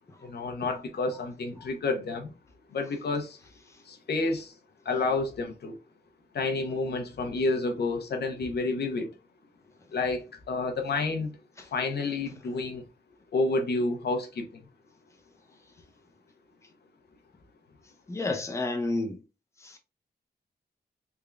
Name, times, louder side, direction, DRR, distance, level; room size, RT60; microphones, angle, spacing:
voice 1, 0.2-2.3 2.7-3.4 3.9-4.5 4.8-5.8 6.3-9.1 9.9-11.4 11.7-12.8 13.3-14.6, left 3 dB, 70° left, 0.8 m, -29 dB
voice 2, 18.1-19.2 19.6-19.8, left 2 dB, 15° left, 0.7 m, -30 dB
3.7 x 3.4 x 2.3 m
wide cardioid pair, 115°, 17 cm